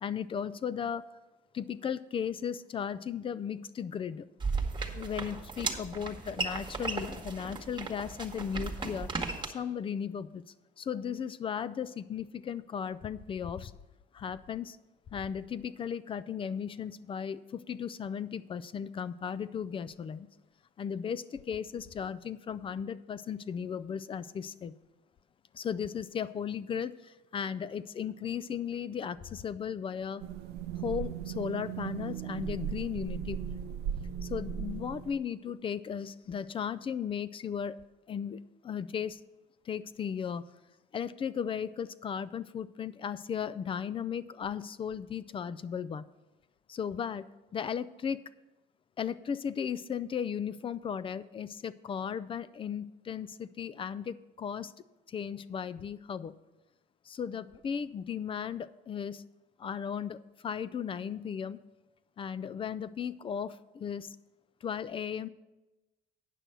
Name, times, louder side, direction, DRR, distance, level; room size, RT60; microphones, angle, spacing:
voice 1, 0.0-1.1 1.5-4.3 4.9-9.1 9.4-10.4 10.8-13.7 14.1-14.8 15.1-20.3 20.8-24.7 25.5-30.2 30.8-33.6 34.2-37.8 38.1-39.2 39.7-40.5 40.9-46.0 46.7-47.3 47.5-48.2 49.0-54.7 55.1-56.3 57.1-59.2 59.6-61.6 62.2-64.2 64.6-65.3, left 7 dB, 30° left, 17 dB, 0.4 m, -36 dB
sound 1, 4.4-9.5, right 4 dB, 30° right, 1.3 m, -36 dB
sound 2, 30.2-35.2, right 9 dB, 75° right, 0.5 m, -37 dB
9.1 x 6.1 x 6.6 m, 1.1 s
cardioid pair, 110°, 17 cm